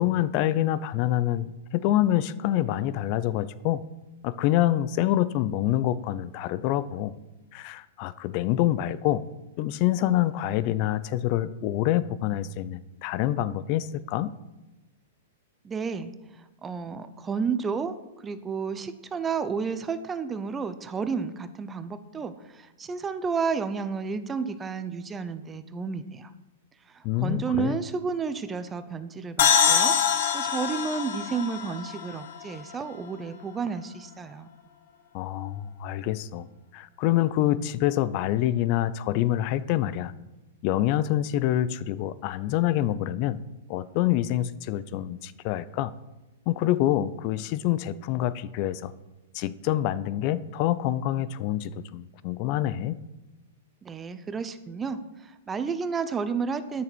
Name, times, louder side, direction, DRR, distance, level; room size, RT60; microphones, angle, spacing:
voice 1, 0.0-3.8 4.2-7.1 7.5-9.2 9.6-14.3 27.0-27.8 35.1-36.5 36.7-40.1 40.6-43.4 43.7-45.9 46.5-48.9 49.3-53.0, left 13 dB, 45° left, 16 dB, 0.5 m, -26 dB
voice 2, 15.6-16.1 16.6-18.0 18.2-26.3 26.9-34.5 53.8-56.8, right 5 dB, 15° right, 11 dB, 0.6 m, -31 dB
sound 1, 29.4-32.9, left 7 dB, 60° left, 1.3 m, -24 dB
9.3 x 6.7 x 6.2 m, 1.1 s
hypercardioid pair, 120°, 0 cm